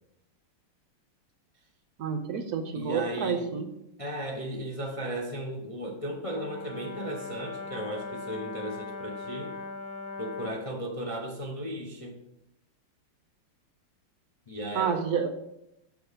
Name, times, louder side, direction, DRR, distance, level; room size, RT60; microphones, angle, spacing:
voice 1, 2.0-3.7 14.7-15.3, right 7 dB, 70° right, 7 dB, 0.9 m, -29 dB
voice 2, 2.7-3.5 4.0-9.6 10.2-12.2 14.5-15.0, equal, 35° left, -1 dB, 0.5 m, -35 dB
Brass instrument, 6.3-10.7, left 3 dB, 55° left, 1.2 m, -39 dB
7.2 x 6.1 x 5.0 m, 0.84 s
omnidirectional pair, 2.3 m